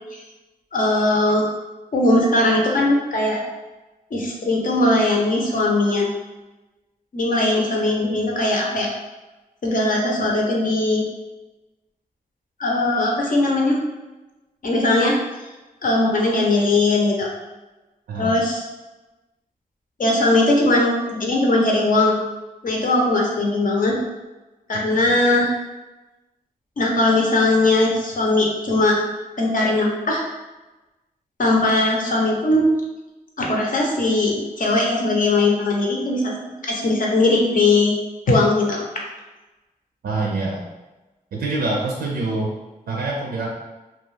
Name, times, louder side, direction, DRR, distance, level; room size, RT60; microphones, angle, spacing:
voice 1, 0.7-1.5 1.9-3.4 4.1-6.1 7.1-8.9 9.6-11.1 12.6-13.8 14.6-15.2 15.8-17.3 18.1-18.6 20.0-22.2 22.6-24.0 24.7-25.5 26.8-29.0 29.4-30.2 31.4-32.7 33.4-36.3 36.6-37.9 38.3-38.8, left 2 dB, 60° left, -1 dB, 0.7 m, -19 dB
voice 2, 40.0-40.6 41.3-42.5 42.9-43.5, right 2 dB, 90° right, -2 dB, 0.4 m, -25 dB
2.4 x 2.3 x 3.2 m, 1.1 s
cardioid pair, 55°, 15 cm